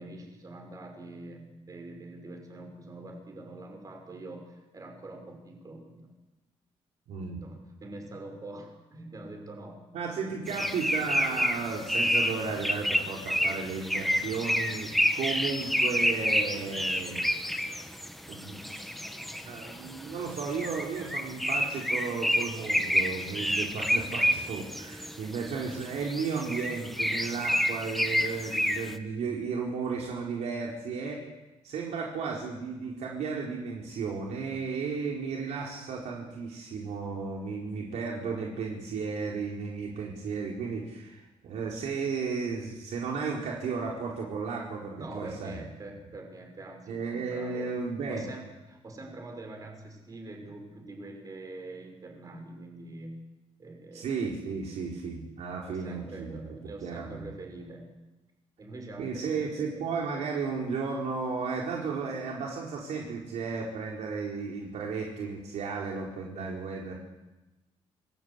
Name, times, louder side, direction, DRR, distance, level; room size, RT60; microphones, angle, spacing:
voice 1, 0.0-6.1 7.4-9.8 10.2-10.6 45.0-53.2 53.6-54.2 55.7-57.9 58.6-59.8, right 2 dB, 30° right, 4 dB, 5.7 m, -44 dB
voice 2, 7.1-7.4 9.9-17.3 18.3-18.9 19.4-31.3 31.6-45.6 46.9-48.2 53.9-56.5 56.8-57.3 59.0-66.9, right 5 dB, 80° right, -2 dB, 4.5 m, -34 dB
sound 1, 10.5-29.0, equal, ahead, 1.5 m, -29 dB
27.0 x 20.0 x 8.4 m, 1.1 s
cardioid pair, 145°, 11 cm